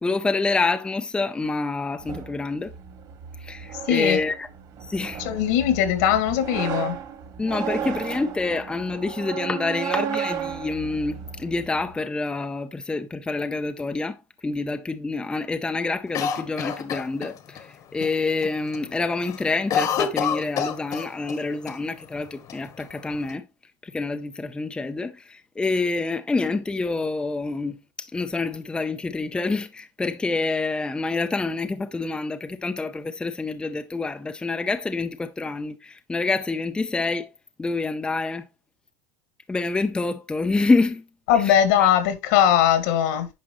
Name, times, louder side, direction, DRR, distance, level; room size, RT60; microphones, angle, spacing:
voice 1, 0.0-2.7 3.4-4.5 4.8-5.2 7.4-23.5 23.8-37.3 37.6-38.4 39.5-41.9, left 3 dB, 10° left, 0.6 m, -27 dB
sound 1, 2.0-12.0, right 8 dB, 45° right, 2.1 m, -34 dB
voice 2, 3.9-4.2 5.2-7.0 41.3-43.3, left 10 dB, 70° left, 2.0 m, -20 dB
Cough, 16.1-17.6 18.0-18.1 18.4-18.8 19.1-21.4 21.7-21.8 22.5-23.3, left 7 dB, 40° left, 1.3 m, -27 dB
9.4 x 5.2 x 3.1 m
supercardioid pair, 115°, 9 cm